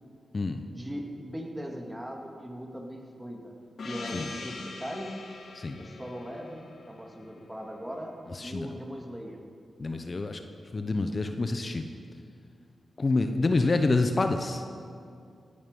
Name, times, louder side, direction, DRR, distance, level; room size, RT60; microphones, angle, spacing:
voice 1, 0.7-3.5 3.8-5.2 5.8-8.1 8.4-9.4 13.4-13.7, equal, 10° right, 0 dB, 2.9 m, -39 dB
Gong, 3.8-8.1, left 3 dB, 70° left, 1.7 m, -43 dB
voice 2, 5.5-5.9 8.4-8.7 9.8-10.4 10.7-11.8 13.0-14.6, left 3 dB, 45° left, 6 dB, 1.0 m, -27 dB
18.5 x 12.0 x 5.5 m, 2.4 s
supercardioid pair, 40°, 0 cm